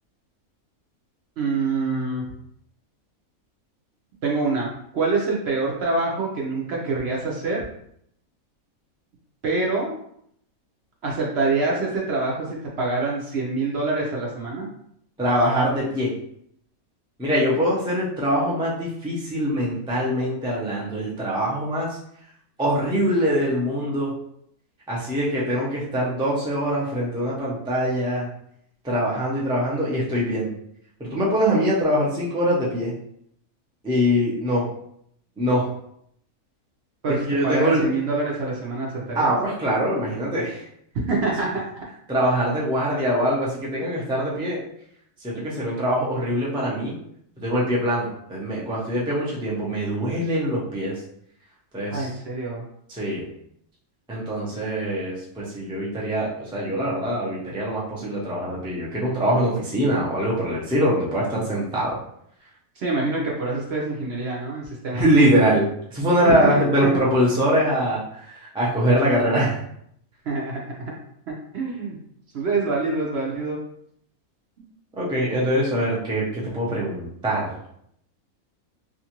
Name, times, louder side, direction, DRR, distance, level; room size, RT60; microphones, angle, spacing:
voice 1, 1.4-2.3 4.2-7.6 9.4-9.9 11.0-14.7 37.0-39.3 41.1-41.8 51.9-52.6 62.8-65.0 66.2-66.9 70.3-70.9 71.3-72.0 72.3-73.6, right 3 dB, 60° right, -3 dB, 0.7 m, -26 dB
voice 2, 15.2-16.1 17.2-22.0 22.6-24.1 24.9-28.3 28.8-30.5 31.0-32.9 33.8-34.6 35.4-35.7 37.1-37.9 39.1-40.6 42.1-44.6 45.2-46.9 47.4-51.0 51.7-52.1 52.9-53.3 54.1-62.0 64.9-69.6 74.9-77.5, equal, 10° right, -6 dB, 0.3 m, -23 dB
2.5 x 2.5 x 2.9 m, 0.70 s
omnidirectional pair, 1.5 m